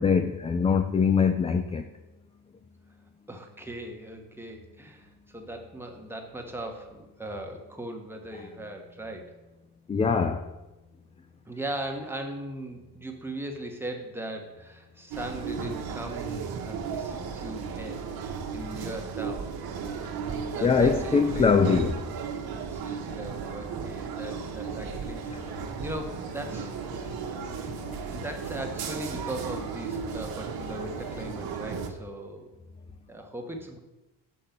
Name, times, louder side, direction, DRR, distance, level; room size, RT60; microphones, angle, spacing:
voice 1, 0.0-1.9 9.9-10.4 20.6-22.0, left 5 dB, 15° left, 8 dB, 0.3 m, -22 dB
voice 2, 3.3-9.3 11.5-19.5 20.5-21.6 22.6-25.5 25.8-26.7 28.1-32.5 33.1-33.8, right 1 dB, 5° right, 2 dB, 1.3 m, -39 dB
sound 1, 15.1-31.9, right 6 dB, 60° right, 1.2 m, -35 dB
sound 2, 24.2-31.2, left 3 dB, 75° left, 1.5 m, -47 dB
6.6 x 5.3 x 5.9 m, 1.0 s
cardioid pair, 100°, 40 cm